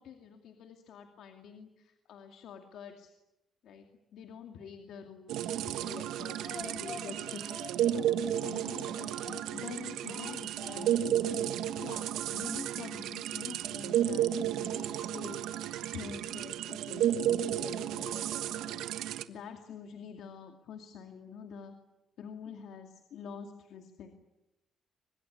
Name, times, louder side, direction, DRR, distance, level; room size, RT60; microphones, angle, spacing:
voice 1, 0.0-3.1 3.6-3.9 4.1-7.7 8.4-21.7 22.2-24.2, left 6 dB, 75° left, 5 dB, 2.4 m, -47 dB
sound 1, 5.3-19.2, right 11 dB, 90° right, 1.2 m, -33 dB
Speech, 6.1-9.6 10.1-11.2 11.5-11.6 11.9-12.0, left 4 dB, 35° left, 4.9 m, -48 dB
24.0 x 21.5 x 9.9 m, 0.95 s
cardioid pair, 90°, 0 cm